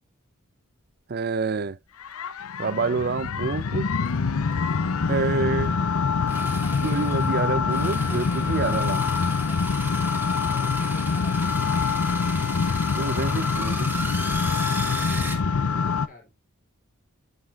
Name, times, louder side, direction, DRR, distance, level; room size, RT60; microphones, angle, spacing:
voice 1, 1.1-1.8 2.6-3.9 5.1-5.8 6.8-9.0 13.0-13.9, right 4 dB, 45° right, 0.5 m, -27 dB
sound 1, 2.0-16.1, left 5 dB, 80° left, 0.6 m, -25 dB
sound 2, 4.0-9.6, left 1 dB, 15° left, 1.0 m, -43 dB
sound 3, 4.1-4.2 4.5-4.6 6.3-15.4, right 2 dB, 10° right, 1.3 m, -36 dB
voice 2, 9.9-12.2 15.1-16.3, left 2 dB, 40° left, 2.9 m, -50 dB
9.5 x 6.7 x 2.4 m
head